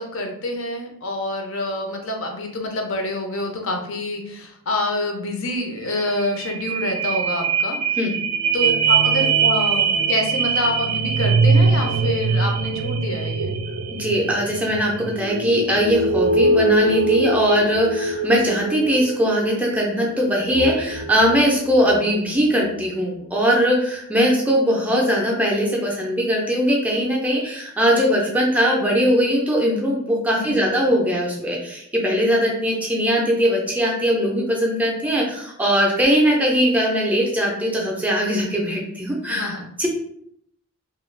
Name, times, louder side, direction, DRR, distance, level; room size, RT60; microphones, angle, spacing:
voice 1, 0.0-7.8 8.5-13.5 30.3-30.8 39.3-39.7, left 1 dB, 60° left, 3 dB, 0.5 m, -27 dB
sound 1, 5.8-5.9 6.1-22.1 22.6-22.7, right 4 dB, 90° right, 0.3 m, -22 dB
voice 2, 14.0-39.9, equal, 5° right, -2 dB, 0.4 m, -20 dB
2.3 x 2.3 x 3.1 m, 0.73 s
head